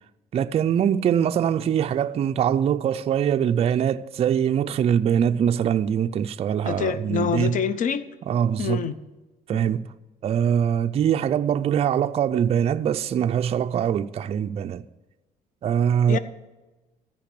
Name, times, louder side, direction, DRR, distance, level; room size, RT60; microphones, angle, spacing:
voice 1, 0.3-7.6 8.3-8.8 9.5-9.9 10.2-14.8 15.6-16.2, right 8 dB, 35° right, 0.4 m, -23 dB
voice 2, 6.6-8.0 8.6-9.0 9.5-9.6 16.1-16.2, left 7 dB, 50° left, 0.6 m, -26 dB
13.5 x 5.3 x 6.8 m
cardioid pair, 110°, 17 cm